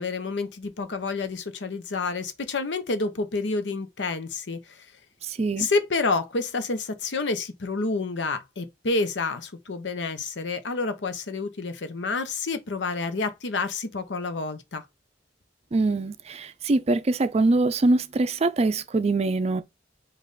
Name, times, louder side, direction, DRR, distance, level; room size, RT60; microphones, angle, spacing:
voice 1, 0.0-4.8 5.6-14.8, left 3 dB, 80° left, 0.7 m, -29 dB
voice 2, 5.2-5.7 15.7-19.6, right 2 dB, 35° right, 0.4 m, -23 dB
5.3 x 2.5 x 3.9 m
head